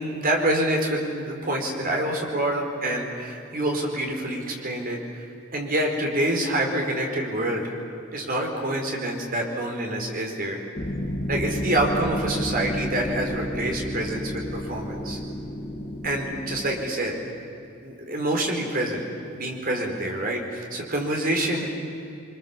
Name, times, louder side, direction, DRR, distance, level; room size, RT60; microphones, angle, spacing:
voice 1, 0.0-7.7 8.1-10.6 11.3-15.2 16.0-17.2 17.8-19.0 19.3-21.7, right 1 dB, 45° right, 1 dB, 4.5 m, -27 dB
sound 1, 10.8-16.8, equal, 30° left, 1.5 m, -31 dB
29.0 x 24.5 x 7.5 m, 2.7 s
head